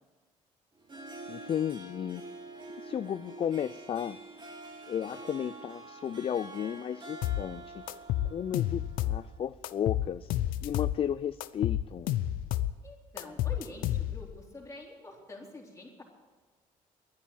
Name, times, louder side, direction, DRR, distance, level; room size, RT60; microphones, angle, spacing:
Harp, 0.7-9.5, right 2 dB, 35° right, 2.6 m, -47 dB
voice 1, 1.3-2.2 2.8-4.2 4.9-7.8 8.3-10.3 10.6-12.1, left 9 dB, 40° left, 14 dB, 0.4 m, -34 dB
sound 1, 7.2-7.5 7.9-9.2 9.6-11.0 11.4-12.8 13.2-14.3, left 13 dB, 85° left, 0.6 m, -30 dB
voice 2, 12.8-16.0, left 2 dB, 20° left, -1 dB, 3.8 m, -46 dB
11.5 x 10.0 x 9.0 m, 1.3 s
cardioid pair, 90°, 14 cm